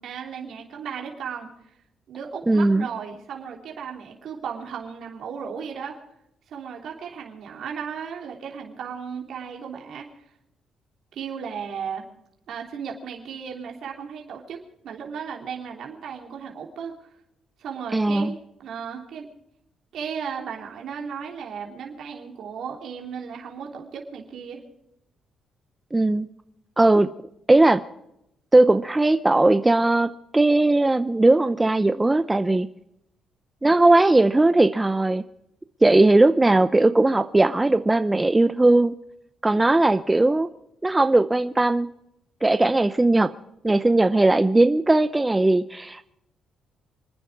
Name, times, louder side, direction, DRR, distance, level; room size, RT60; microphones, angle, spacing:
voice 1, 0.0-1.5 2.1-6.0 6.5-10.3 11.1-12.0 12.5-14.6 14.8-16.9 17.6-19.3 19.9-24.6, right 7 dB, 70° right, 0 dB, 3.3 m, -35 dB
voice 2, 2.5-2.9 17.9-18.3 25.9-26.3 26.8-27.1 27.5-27.8 28.5-32.7 33.6-35.2 35.8-38.9 39.4-40.5 40.8-41.9 42.4-43.3 43.6-46.0, right 2 dB, 15° right, 11 dB, 0.7 m, -18 dB
27.5 x 10.0 x 4.8 m, 0.79 s
cardioid pair, 90°, 0 cm